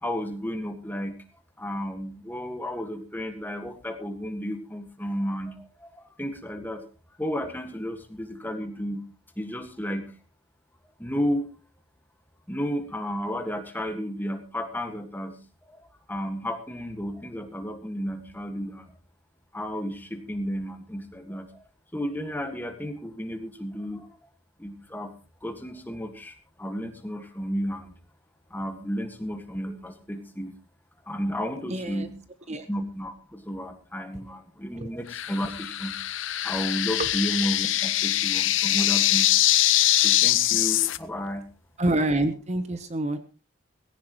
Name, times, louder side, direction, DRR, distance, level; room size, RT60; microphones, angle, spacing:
voice 1, 0.0-1.2 1.6-6.8 7.2-9.0 9.4-10.1 11.0-11.5 12.5-15.4 15.7-18.9 19.5-21.6 21.9-24.1 24.6-25.1 25.4-27.9 28.5-30.5 31.1-32.1 32.7-36.0 36.4-39.3 40.0-41.4, equal, 10° left, 6 dB, 1.8 m, -32 dB
voice 2, 31.7-32.1 32.5-32.7 34.8-34.9 37.0-37.1 41.8-43.2, right 1 dB, 35° right, 10 dB, 0.9 m, -27 dB
sound 1, 35.1-41.0, left 14 dB, 70° left, 0.7 m, -23 dB
18.5 x 16.0 x 3.1 m, 0.32 s
head